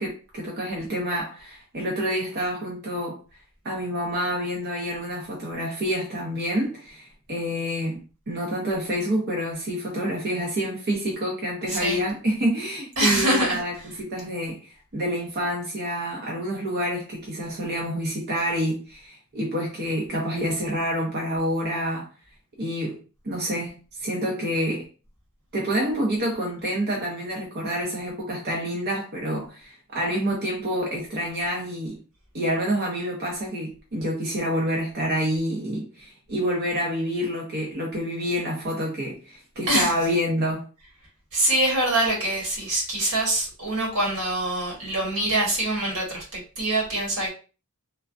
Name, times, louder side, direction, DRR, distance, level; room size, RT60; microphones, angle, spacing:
voice 1, 0.0-3.2 3.6-8.0 8.3-22.1 22.6-24.9 25.5-32.0 32.3-40.7, equal, 50° right, 0.7 m, -28 dB
voice 2, 13.0-13.6 39.7-39.9 41.3-47.3, right 1 dB, 85° right, 1.5 m, -24 dB
3.3 x 2.2 x 2.5 m
head